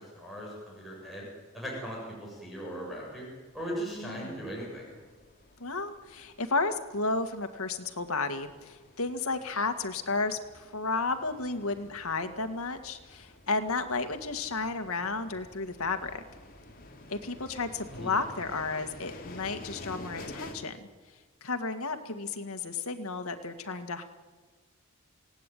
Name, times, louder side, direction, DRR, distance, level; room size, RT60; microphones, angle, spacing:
voice 1, 0.2-1.3 1.5-3.3 3.5-4.9 17.9-18.1, equal, ahead, -3 dB, 7.7 m, -38 dB
sound 1, 3.5-20.5, left 2 dB, 40° left, 3.1 m, -50 dB
voice 2, 4.0-4.5 5.6-16.2 17.1-20.8 21.4-24.0, left 3 dB, 80° left, 7 dB, 2.0 m, -33 dB
27.5 x 18.0 x 9.3 m, 1.4 s
head